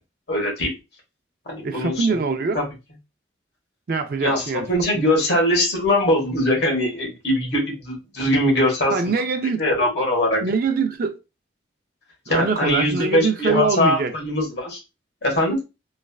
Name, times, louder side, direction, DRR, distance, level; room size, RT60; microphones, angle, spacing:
voice 1, 0.3-0.7 1.5-2.1 2.5-2.6 4.2-8.9 9.6-10.4 12.3-14.8 15.2-15.6, left 1 dB, 60° left, 1.3 m, -21 dB
voice 2, 1.6-2.6 3.9-4.7 4.9-5.1 8.9-9.6 10.4-11.2 12.3-14.1, right 4 dB, 50° right, 0.4 m, -23 dB
3.2 x 2.4 x 2.3 m
head